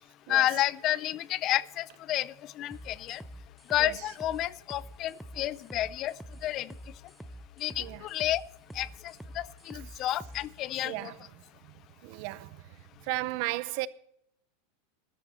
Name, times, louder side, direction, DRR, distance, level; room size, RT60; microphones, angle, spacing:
voice 1, 0.3-3.2 3.7-6.1 6.4-6.7 7.6-8.4 8.7-11.1, left 14 dB, 35° left, 0.4 m, -30 dB
sound 1, 2.7-10.5, equal, ahead, 0.6 m, -46 dB
voice 2, 10.8-11.3 12.0-12.6 13.0-13.9, right 20 dB, 55° right, 0.6 m, -34 dB
13.0 x 12.5 x 4.3 m
supercardioid pair, 140°, 0 cm